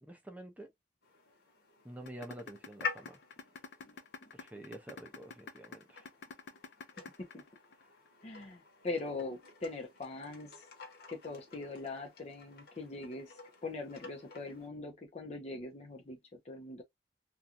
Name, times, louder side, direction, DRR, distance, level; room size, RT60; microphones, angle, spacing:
voice 1, 0.0-0.7 1.8-3.2 4.3-6.1, right 1 dB, 10° right, 0.6 m, -48 dB
sound 1, 1.0-14.7, left 5 dB, 60° left, 1.0 m, -48 dB
sound 2, 2.1-8.1, left 4 dB, 80° left, 0.5 m, -47 dB
voice 2, 8.2-10.7 11.1-16.8, left 3 dB, 40° left, 0.6 m, -42 dB
2.4 x 2.3 x 2.6 m
head